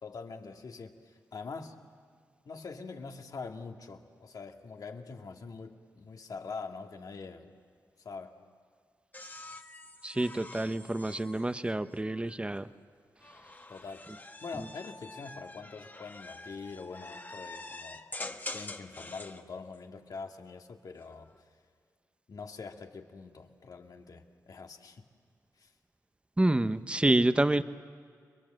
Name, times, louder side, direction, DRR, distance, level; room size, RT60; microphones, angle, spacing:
voice 1, 0.0-1.8 2.5-7.5 8.0-8.4 13.7-14.1 14.4-18.0 18.5-21.3 22.3-25.0 25.6-25.7, left 4 dB, 65° left, 4 dB, 2.0 m, -44 dB
sound 1, 9.1-12.4 13.2-19.4 20.9-21.4, left 2 dB, 30° left, 1.5 m, -46 dB
voice 2, 10.0-12.7 26.4-27.6, right 1 dB, 15° right, 12 dB, 0.9 m, -28 dB
29.5 x 22.0 x 7.7 m, 2.1 s
cardioid pair, 55°, 7 cm